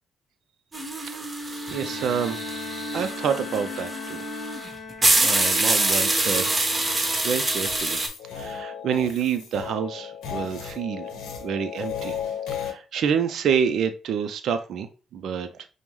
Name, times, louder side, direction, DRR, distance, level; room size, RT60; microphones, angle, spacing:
sound 1, 0.7-8.1, right 2 dB, 25° right, 1.1 m, -25 dB
Bowed string instrument, 1.5-5.6, left 5 dB, 40° left, 0.7 m, -39 dB
voice 1, 1.7-2.5 2.9-4.2 5.2-6.5 7.2-8.0 8.3-12.2 12.6-15.7, right 7 dB, 75° right, 0.4 m, -28 dB
sound 2, 7.6-12.7, left 8 dB, 85° left, 0.7 m, -34 dB
5.1 x 2.0 x 3.0 m
supercardioid pair, 60°, 0 cm